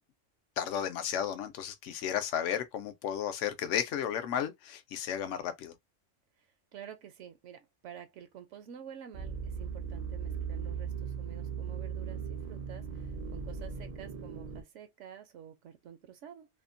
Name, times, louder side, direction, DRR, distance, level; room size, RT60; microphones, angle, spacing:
voice 1, 0.6-5.7, left 9 dB, 75° left, 0.9 m, -33 dB
voice 2, 6.4-16.5, right 9 dB, 75° right, 0.9 m, -50 dB
sound 1, 9.1-14.6, right 6 dB, 50° right, 0.5 m, -38 dB
2.8 x 2.1 x 2.4 m
omnidirectional pair, 1.3 m